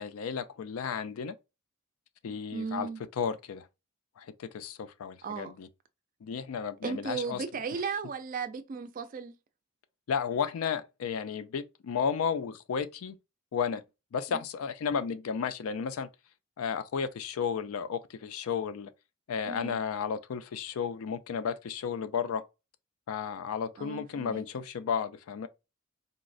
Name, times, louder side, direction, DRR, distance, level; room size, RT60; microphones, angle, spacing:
voice 1, 0.0-1.4 2.2-2.9 3.2-3.7 4.2-5.7 6.2-7.4 10.1-13.2 13.5-13.8 14.1-16.1 16.6-18.9 19.3-22.4 23.1-25.5, left 6 dB, 90° left, 0.4 m, -33 dB
voice 2, 2.2-3.0 5.2-5.5 6.8-9.3 14.3-14.4 19.4-19.8 23.8-24.4, right 5 dB, 40° right, 0.3 m, -36 dB
3.9 x 2.0 x 2.4 m
head